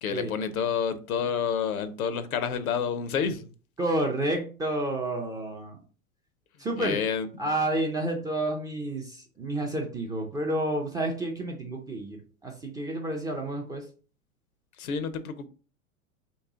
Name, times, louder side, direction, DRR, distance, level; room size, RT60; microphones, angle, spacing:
voice 1, 0.0-3.5 6.7-7.5 14.8-15.5, left 6 dB, 80° left, 0.7 m, -29 dB
voice 2, 3.8-5.8 6.6-7.0 7.4-13.9, right 1 dB, 10° right, 0.3 m, -30 dB
3.1 x 3.0 x 3.7 m
hypercardioid pair, 95°, 42 cm